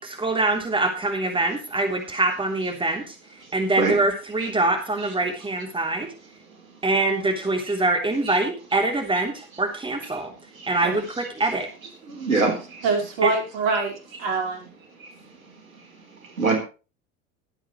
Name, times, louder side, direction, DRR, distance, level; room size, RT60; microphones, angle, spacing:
voice 1, 0.0-3.1 3.5-6.1 6.8-10.3 10.7-11.7 13.2-13.3, right 2 dB, 10° right, 3 dB, 3.2 m, -24 dB
voice 2, 12.1-12.8 15.0-15.1 16.4-16.6, right 3 dB, 75° right, 3 dB, 3.9 m, -24 dB
voice 3, 12.8-14.7, right 4 dB, 50° right, 2 dB, 4.8 m, -25 dB
22.5 x 8.1 x 3.1 m, 0.33 s
figure-of-eight pair, 75°, 41 cm